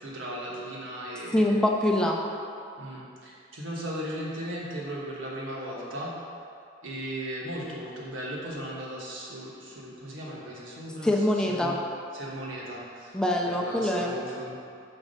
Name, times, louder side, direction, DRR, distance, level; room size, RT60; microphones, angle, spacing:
voice 1, 0.0-1.6 2.8-6.1 6.8-11.1 11.5-11.8 12.1-13.2 13.4-14.6, right 1 dB, 80° right, -4 dB, 1.4 m, -37 dB
voice 2, 1.3-2.2 11.0-11.8 13.1-14.2, left 1 dB, 5° left, 0 dB, 0.5 m, -24 dB
6.1 x 4.0 x 5.3 m, 2.5 s
head